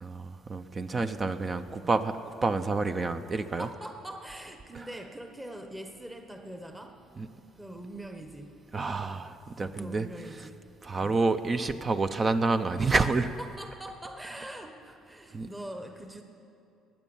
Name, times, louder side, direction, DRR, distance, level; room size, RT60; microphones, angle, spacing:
voice 1, 0.0-3.7 7.2-7.3 8.7-10.1 10.8-13.3 15.3-15.5, right 3 dB, 25° right, 10 dB, 0.6 m, -28 dB
voice 2, 3.6-7.0 7.6-8.6 9.6-10.6 13.4-16.2, right 1 dB, 10° right, 5 dB, 1.1 m, -43 dB
21.0 x 9.1 x 7.1 m, 2.6 s
cardioid pair, 115°, 0 cm